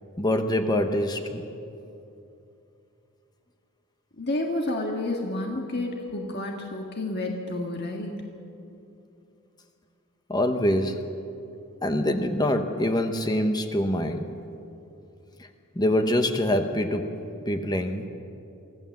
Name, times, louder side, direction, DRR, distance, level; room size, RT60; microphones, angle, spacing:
voice 1, 0.2-1.4 10.3-11.0 11.8-14.3 15.4-15.5 15.8-17.1 17.5-18.1, left 1 dB, 20° left, 6 dB, 1.0 m, -25 dB
voice 2, 4.2-8.1, left 2 dB, 45° left, 1 dB, 1.8 m, -30 dB
24.5 x 15.5 x 7.3 m, 2.7 s
head